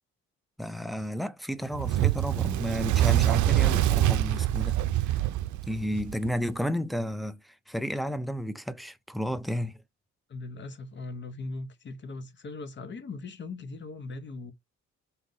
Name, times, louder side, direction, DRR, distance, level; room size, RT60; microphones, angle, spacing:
voice 1, 0.6-5.2 5.7-9.8, equal, ahead, 0.4 m, -32 dB
Fire, 1.7-6.3, right 14 dB, 75° right, 0.5 m, -25 dB
voice 2, 10.3-14.5, left 3 dB, 40° left, 0.9 m, -39 dB
3.9 x 2.8 x 3.8 m
cardioid pair, 115°, 30 cm